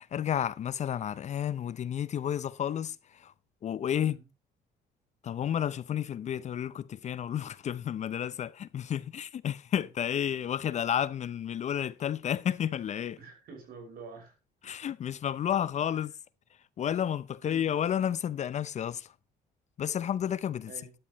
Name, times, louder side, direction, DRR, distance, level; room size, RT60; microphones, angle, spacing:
voice 1, 0.0-3.3 3.6-4.2 5.2-13.2 14.6-16.1 16.8-19.1 19.8-20.7, left 9 dB, 45° left, 0.6 m, -31 dB
voice 2, 13.2-14.4 17.4-17.8 20.7-21.0, right 5 dB, 65° right, 5.7 m, -48 dB
12.0 x 12.0 x 3.0 m
cardioid pair, 110°, 17 cm